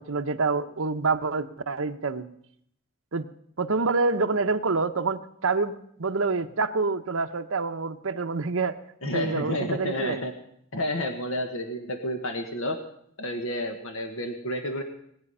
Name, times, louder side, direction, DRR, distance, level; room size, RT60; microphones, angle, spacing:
voice 1, 0.0-2.2 3.1-3.3 3.6-8.8 9.0-10.2, right 4 dB, 75° right, 7 dB, 0.9 m, -27 dB
voice 2, 9.0-10.3 10.7-12.8 13.2-14.8, left 1 dB, 70° left, 5 dB, 1.4 m, -30 dB
19.0 x 9.6 x 5.5 m, 0.70 s
head